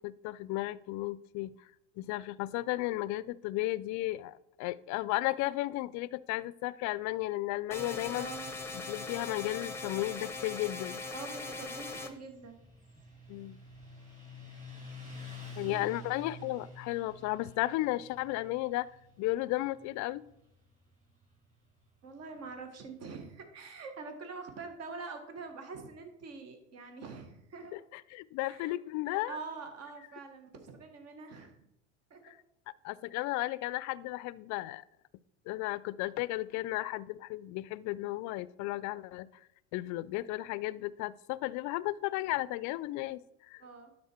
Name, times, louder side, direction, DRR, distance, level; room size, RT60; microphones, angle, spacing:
voice 1, 0.0-1.5 2.0-8.3 8.7-11.0 13.3-13.6 15.6-18.9 19.2-20.2 27.7-29.4 32.2-32.3 32.8-34.8 35.5-39.3 39.7-43.2 43.5-43.6, left 17 dB, 50° left, 19 dB, 0.5 m, -34 dB
sound 1, 7.7-12.1, left 3 dB, 5° left, 0.9 m, -40 dB
voice 2, 8.1-8.5 11.1-12.6 15.6-15.9 22.0-27.8 28.4-28.8 29.1-31.6 32.1-32.2 43.6-43.9, right 4 dB, 45° right, 6 dB, 1.5 m, -45 dB
Motorcycle, 12.0-23.0, left 1 dB, 20° right, 3.8 m, -50 dB
11.5 x 4.3 x 4.4 m, 0.80 s
supercardioid pair, 95°, 37 cm